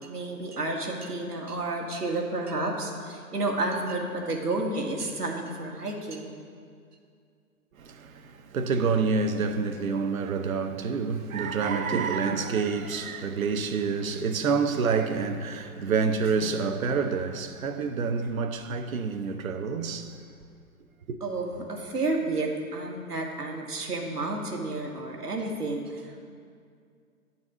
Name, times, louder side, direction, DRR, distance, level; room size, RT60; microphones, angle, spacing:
voice 1, 0.0-6.3 21.2-26.3, right 2 dB, 85° right, 1.4 m, -31 dB
voice 2, 7.7-20.2 21.1-21.2, right 5 dB, 65° right, 0.8 m, -28 dB
10.0 x 4.2 x 6.1 m
figure-of-eight pair, 125°, 46 cm